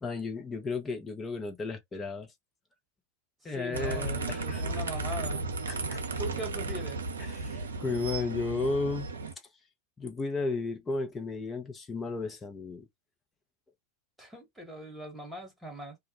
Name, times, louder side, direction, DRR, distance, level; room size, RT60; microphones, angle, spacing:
voice 1, 0.0-2.3 3.4-4.6 5.7-6.2 7.2-9.1 10.0-12.9, left 3 dB, 20° left, 0.8 m, -34 dB
voice 2, 3.4-5.5 6.2-7.0 14.2-16.0, right 1 dB, 5° right, 1.4 m, -40 dB
sound 1, 3.7-9.3, right 3 dB, 70° right, 0.5 m, -34 dB
2.3 x 2.1 x 2.9 m
figure-of-eight pair, 90°, 0 cm